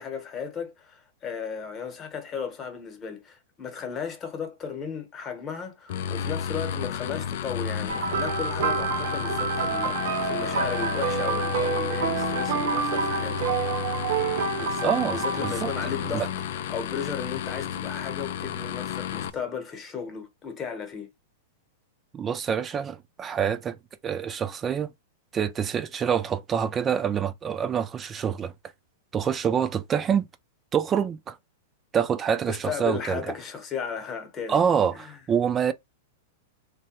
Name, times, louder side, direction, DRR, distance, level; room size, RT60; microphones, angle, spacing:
voice 1, 0.0-13.9 14.5-21.1 32.5-34.6 34.9-35.2, left 6 dB, 25° left, 0.9 m, -35 dB
sound 1, 5.9-19.3, left 9 dB, 65° left, 0.3 m, -32 dB
sound 2, 7.9-16.1 17.0-17.2 19.1-19.2, right 5 dB, 65° right, 0.7 m, -28 dB
voice 2, 14.8-15.7 16.1-16.3 22.1-23.8 24.0-24.9 25.3-28.5 29.1-30.3 30.7-31.4 31.9-33.3 34.5-35.7, right 7 dB, 20° right, 0.3 m, -26 dB
3.2 x 2.2 x 2.9 m
hypercardioid pair, 140°, 0 cm